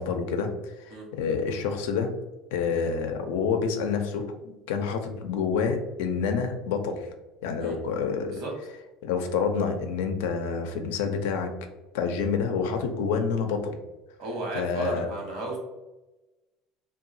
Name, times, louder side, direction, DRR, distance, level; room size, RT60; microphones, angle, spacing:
voice 1, 0.0-2.1 2.5-7.1 7.4-8.3 9.0-11.5 11.9-13.8 14.5-15.1, left 5 dB, 80° left, 6 dB, 0.4 m, -28 dB
voice 2, 14.2-15.6, right 2 dB, 65° right, 0 dB, 1.0 m, -33 dB
2.8 x 2.2 x 2.6 m, 1.1 s
supercardioid pair, 95°, 0 cm